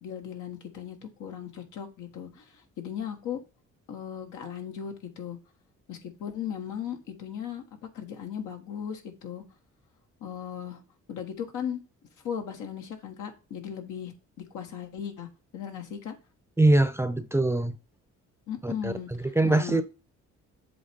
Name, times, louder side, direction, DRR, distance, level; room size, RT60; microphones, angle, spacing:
voice 1, 0.0-3.4 3.9-5.4 5.9-7.6 7.9-9.4 10.2-10.8 11.1-11.8 12.2-14.1 14.5-15.3 15.5-16.1 18.5-19.8, left 8 dB, 80° left, 1.5 m, -37 dB
voice 2, 16.6-17.8 18.6-18.9 19.2-19.8, right 2 dB, 10° right, 0.6 m, -23 dB
7.8 x 3.3 x 5.2 m
cardioid pair, 90°, 30 cm